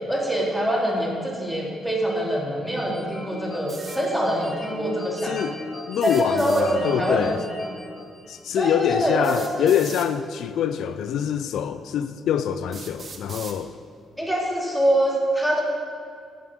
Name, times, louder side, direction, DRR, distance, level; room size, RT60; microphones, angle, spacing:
voice 1, 0.1-5.5 6.0-7.4 8.5-9.7 14.2-15.6, equal, ahead, -3 dB, 3.5 m, -24 dB
sound 1, 2.8-8.5, left 1 dB, 35° left, 3.5 m, -38 dB
sound 2, 3.7-4.0 5.9-6.7 8.1-8.2 9.2-10.1 11.1-11.2 11.9-12.0 12.7-13.6, right 4 dB, 40° right, 1.5 m, -40 dB
voice 2, 5.2-5.6 5.9-7.4 8.3-13.7, left 9 dB, 75° left, 11 dB, 0.5 m, -25 dB
11.0 x 7.4 x 8.9 m, 2.3 s
cardioid pair, 90°, 0 cm